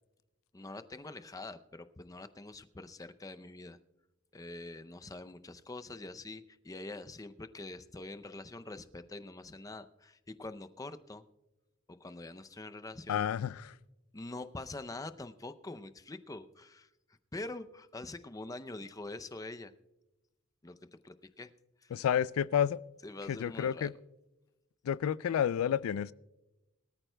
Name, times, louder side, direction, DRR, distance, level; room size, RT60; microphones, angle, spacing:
voice 1, 0.5-3.8 4.3-11.2 12.0-13.2 14.1-16.9 17.3-19.7 20.6-20.8 21.0-21.5 21.8-21.9 23.0-23.9, left 2 dB, 15° left, 0.5 m, -45 dB
voice 2, 13.1-13.7 21.9-22.8 23.3-23.9 24.9-26.1, left 9 dB, 90° left, 0.3 m, -30 dB
22.5 x 13.5 x 2.2 m
head